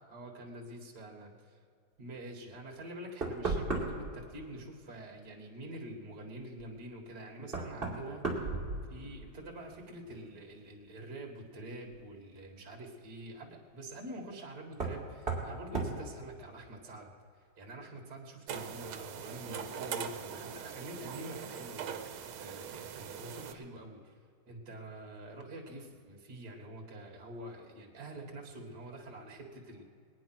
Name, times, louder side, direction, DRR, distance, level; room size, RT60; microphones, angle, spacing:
voice 1, 0.0-1.6 2.0-8.5 8.9-17.1 17.6-24.1 24.5-29.8, right 1 dB, 50° right, 1 dB, 2.6 m, -46 dB
Knock, 3.2-4.2 6.6-6.7 7.5-9.3 9.6-10.2 11.9-12.0 14.7-15.0 15.3-15.5 15.7-16.0, right 3 dB, 25° right, 2.9 m, -35 dB
sound 1, 18.5-23.5, right 7 dB, 75° right, 1.7 m, -41 dB
21.0 x 9.6 x 6.1 m, 2.3 s
omnidirectional pair, 2.3 m